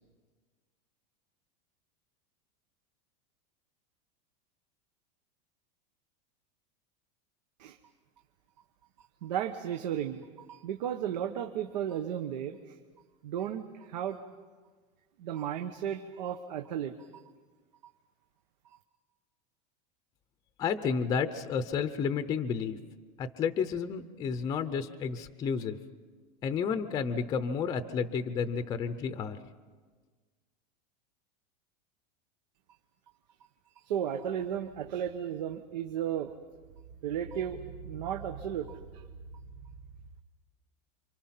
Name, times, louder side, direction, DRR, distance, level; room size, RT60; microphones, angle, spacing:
voice 1, 9.2-12.8 13.2-14.2 15.2-16.9 33.8-36.3 37.0-39.0, right 9 dB, 90° right, 7 dB, 1.3 m, -34 dB
voice 2, 20.6-22.8 23.2-25.8 26.4-29.4, left 6 dB, 15° left, 11 dB, 0.6 m, -31 dB
28.0 x 25.5 x 5.8 m, 1.4 s
supercardioid pair, 175°, 21 cm